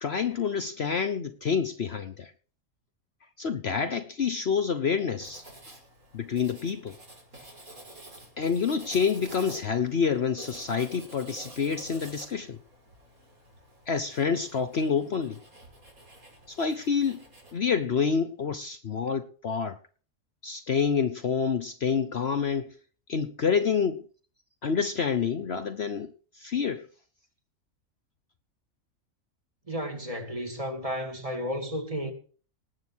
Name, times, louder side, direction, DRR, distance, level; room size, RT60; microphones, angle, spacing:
voice 1, 0.0-2.3 3.4-5.4 6.1-7.0 8.4-12.6 13.9-15.4 16.5-17.2 17.5-19.8 20.4-22.7 23.1-24.1 24.6-26.9, left 6 dB, 55° left, 1.0 m, -28 dB
Writing, 5.2-17.6, right 1 dB, 85° right, 5.9 m, -49 dB
voice 2, 29.7-32.1, equal, 25° right, 2.8 m, -33 dB
19.5 x 8.4 x 6.3 m
omnidirectional pair, 1.4 m